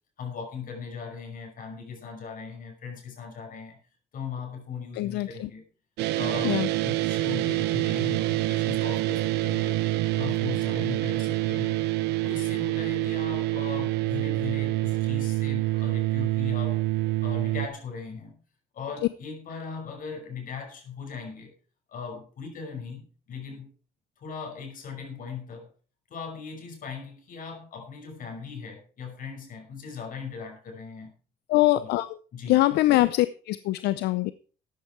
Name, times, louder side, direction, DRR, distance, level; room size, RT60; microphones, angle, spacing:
voice 1, 0.2-3.8 4.1-5.6 6.1-9.8 10.2-11.8 12.2-16.8 17.2-18.4 18.7-21.5 21.9-23.7 24.2-25.7 26.1-31.1 31.8-32.0 32.3-32.6, left 5 dB, 55° left, 5.8 m, -39 dB
voice 2, 5.0-5.5 6.4-6.7 31.5-32.2 32.5-34.3, left 17 dB, 80° left, 0.6 m, -23 dB
sound 1, 6.0-17.7, right 17 dB, 85° right, 0.9 m, -26 dB
13.5 x 10.5 x 4.6 m
cardioid pair, 110°, 17 cm